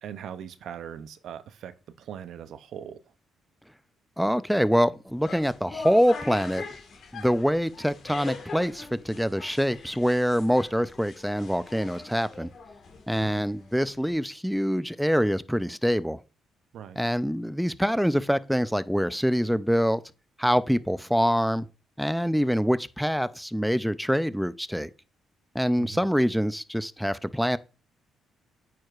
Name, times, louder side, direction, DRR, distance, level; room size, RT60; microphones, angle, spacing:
voice 1, 0.0-3.0 13.2-13.4 16.7-17.0 25.8-26.0, right 9 dB, 70° right, 0.5 m, -40 dB
voice 2, 4.2-6.6 7.1-12.5 13.1-16.2 17.0-20.0 20.4-21.7 22.0-24.9 25.5-27.6, equal, ahead, 0.3 m, -25 dB
sound 1, 5.1-14.1, left 4 dB, 60° left, 1.5 m, -43 dB
8.8 x 4.7 x 2.4 m
cardioid pair, 90°, 0 cm